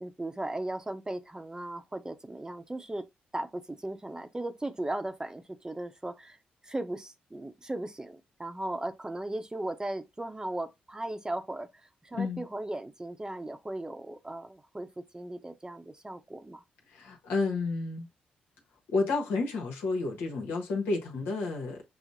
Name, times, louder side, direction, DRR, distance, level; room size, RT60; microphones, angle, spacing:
voice 1, 0.0-3.1 3.3-6.4 6.6-11.7 12.0-16.6, right 1 dB, 20° right, 0.7 m, -37 dB
voice 2, 12.1-12.4 16.9-18.1 18.9-21.8, left 3 dB, 80° left, 0.9 m, -31 dB
5.8 x 2.1 x 2.6 m
supercardioid pair, 45°, 4 cm